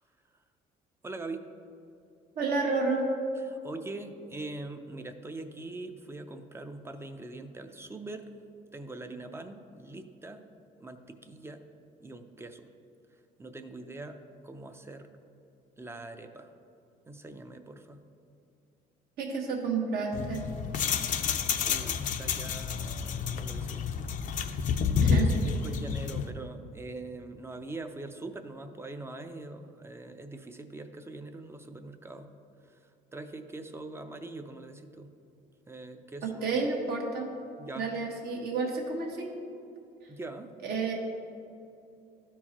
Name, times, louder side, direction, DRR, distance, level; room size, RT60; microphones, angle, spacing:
voice 1, 1.0-1.4 3.5-8.3 8.7-10.4 10.8-11.6 12.0-12.7 13.4-15.1 15.8-16.5 17.1-18.0 21.6-23.9 24.3-24.7 25.0-32.3 32.7-32.8 33.1-35.2 35.7-36.6 37.6-37.9 40.1-40.5, right 2 dB, 15° right, 7 dB, 0.4 m, -43 dB
voice 2, 2.3-3.1 19.2-20.4 25.0-25.3 36.2-37.3 37.8-39.3 40.6-40.9, right 4 dB, 70° right, 0 dB, 1.4 m, -30 dB
sound 1, 20.1-26.3, left 6 dB, 50° left, 0.5 m, -29 dB
12.5 x 4.5 x 2.9 m, 2.6 s
cardioid pair, 110°, 17 cm